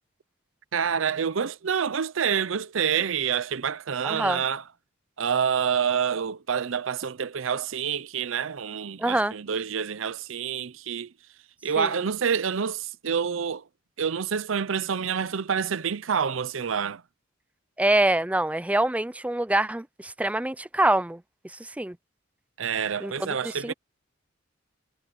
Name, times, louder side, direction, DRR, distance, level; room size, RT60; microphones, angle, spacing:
voice 1, 0.7-4.6 5.2-11.1 11.6-13.6 14.0-17.0 22.6-23.7, right 7 dB, 75° right, 0.6 m, -27 dB
voice 2, 4.0-4.4 9.0-9.3 11.8-11.9 17.8-21.2 21.6-22.0 23.0-23.7, right 1 dB, 5° right, 0.5 m, -25 dB
head